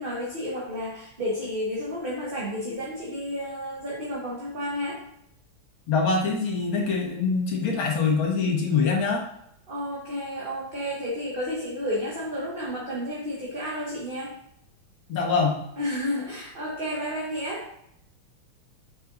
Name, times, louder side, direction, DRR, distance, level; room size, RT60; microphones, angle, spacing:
voice 1, 0.0-5.0 9.7-14.3 15.8-17.7, equal, 30° right, -5 dB, 1.4 m, -31 dB
voice 2, 5.9-9.2 15.1-15.6, left 4 dB, 70° left, 0 dB, 2.3 m, -24 dB
8.8 x 6.5 x 2.6 m, 0.74 s
omnidirectional pair, 2.4 m